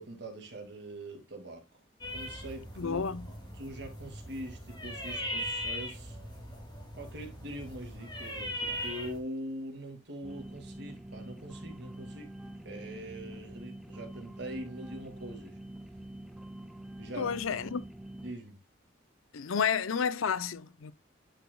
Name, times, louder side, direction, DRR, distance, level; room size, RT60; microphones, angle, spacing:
voice 1, 0.0-1.7 2.1-3.0 3.6-6.2 7.0-12.3 12.6-15.6 17.0-17.4 18.2-18.6, right 1 dB, 55° right, 2.3 m, -43 dB
sound 1, 2.0-9.2, equal, 20° left, 2.4 m, -39 dB
voice 2, 2.8-3.3 17.2-17.8 19.3-20.9, left 6 dB, 85° left, 0.6 m, -31 dB
sound 2, 10.2-18.3, right 1 dB, ahead, 0.5 m, -45 dB
10.0 x 6.2 x 2.2 m
head